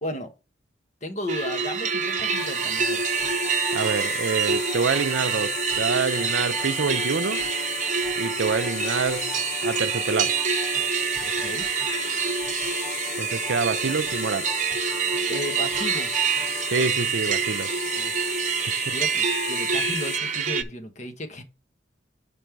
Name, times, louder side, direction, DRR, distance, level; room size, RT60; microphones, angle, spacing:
voice 1, 0.0-0.3 1.0-3.0 11.2-11.7 15.3-16.3 18.0-21.4, left 1 dB, 40° left, 1.2 m, -35 dB
sound 1, 1.3-20.6, right 6 dB, 40° right, 0.7 m, -26 dB
sound 2, 2.2-20.2, left 14 dB, 55° left, 0.3 m, -36 dB
sound 3, 2.2-16.9, equal, 5° right, 2.7 m, -43 dB
voice 2, 3.7-7.4 8.2-10.4 13.2-14.5 16.7-17.7 18.7-19.0, right 5 dB, 80° right, 0.6 m, -27 dB
5.3 x 5.3 x 4.6 m
head